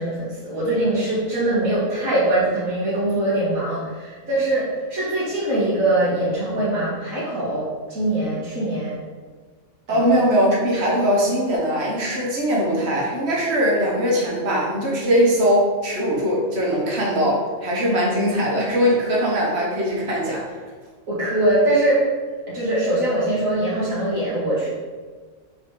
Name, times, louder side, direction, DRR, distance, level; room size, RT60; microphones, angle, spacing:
voice 1, 0.0-9.0 9.9-10.1 21.1-22.1 22.5-24.7, right 1 dB, 80° right, -7 dB, 2.3 m, -22 dB
voice 2, 9.9-20.5, equal, 50° right, -3 dB, 1.6 m, -21 dB
4.7 x 4.6 x 5.0 m, 1.5 s
omnidirectional pair, 1.4 m